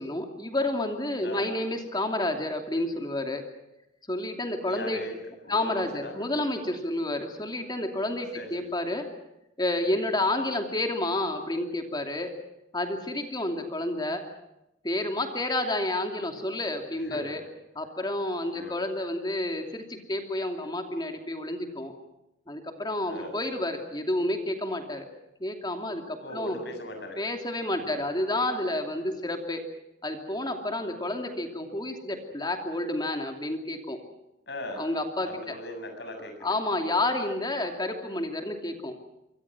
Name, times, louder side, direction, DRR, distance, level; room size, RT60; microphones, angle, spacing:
voice 1, 0.0-3.4 4.1-5.0 5.5-9.1 9.6-12.3 12.7-14.2 14.8-17.4 17.7-21.9 22.5-25.1 25.4-26.6 27.2-29.6 30.0-34.0 34.8-35.3 36.4-39.0, left 1 dB, 25° left, 4 dB, 2.7 m, -30 dB
voice 2, 4.7-5.1 5.4-6.2 8.3-8.7 17.0-17.4 18.5-18.8 23.0-23.4 26.2-27.2 27.8-28.0 29.0-29.2 34.5-34.8 35.3-36.5, left 1 dB, 65° left, 5 dB, 7.2 m, -39 dB
27.0 x 24.5 x 6.1 m, 0.89 s
head